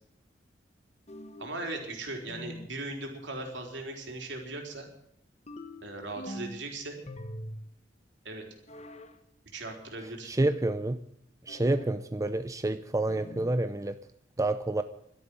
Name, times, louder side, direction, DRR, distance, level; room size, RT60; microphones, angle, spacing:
sound 1, 1.1-1.6 2.3-2.8 5.5-6.7 7.1-7.7 8.7-9.2 11.5-12.0 13.1-13.6, equal, 35° left, 1.3 m, -43 dB
voice 1, 1.4-4.9 5.8-7.0 8.2-8.4 9.5-10.3, right 2 dB, 70° right, 2 dB, 3.9 m, -38 dB
voice 2, 10.2-11.0 11.4-14.0 14.4-14.8, right 2 dB, 20° right, 10 dB, 0.5 m, -28 dB
12.5 x 11.0 x 9.6 m, 0.70 s
head